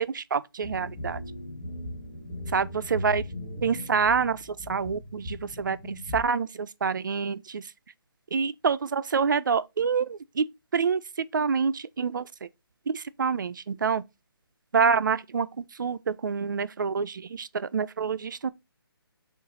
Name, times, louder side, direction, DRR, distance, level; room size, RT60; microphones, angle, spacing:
voice 1, 0.1-1.2 2.5-3.2 3.6-4.4 4.7-7.6 8.3-10.4 10.7-12.3 12.9-14.0 14.7-18.5, right 6 dB, 50° right, 0.4 m, -27 dB
sound 1, 0.6-6.2, left 1 dB, 10° left, 2.3 m, -38 dB
5.4 x 2.5 x 3.9 m
hypercardioid pair, 170°, 13 cm